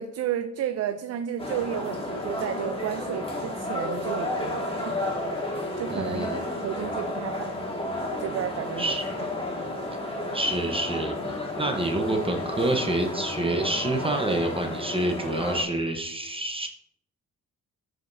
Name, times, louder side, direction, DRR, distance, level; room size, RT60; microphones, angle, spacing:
voice 1, 0.0-5.0 5.8-7.5 8.1-9.0, right 10 dB, 55° right, 8 dB, 0.5 m, -32 dB
sound 1, 1.4-15.6, left 1 dB, 20° left, 1.8 m, -32 dB
voice 2, 5.9-6.4 8.8-9.0 10.3-16.7, right 1 dB, 20° right, 3 dB, 0.9 m, -27 dB
11.5 x 5.1 x 2.7 m, 0.77 s
cardioid pair, 90°, 30 cm